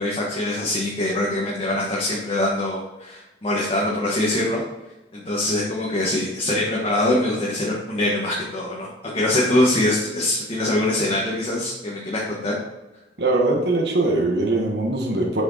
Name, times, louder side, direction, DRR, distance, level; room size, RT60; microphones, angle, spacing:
voice 1, 0.0-4.6 5.1-12.5, left 1 dB, 35° left, -4 dB, 1.5 m, -23 dB
voice 2, 13.2-15.4, right 2 dB, 65° right, -1 dB, 1.5 m, -21 dB
8.0 x 6.3 x 4.2 m, 1.0 s
head